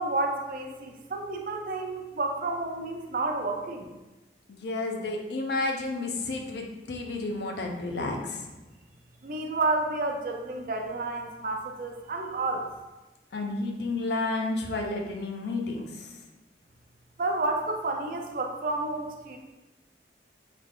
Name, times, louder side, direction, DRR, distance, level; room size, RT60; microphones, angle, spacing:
voice 1, 0.0-3.9 9.2-12.7 17.2-19.4, right 2 dB, 50° right, 3 dB, 0.4 m, -30 dB
voice 2, 4.5-8.5 13.3-16.1, left 2 dB, 70° left, 2 dB, 0.5 m, -31 dB
3.3 x 2.3 x 3.6 m, 1.1 s
head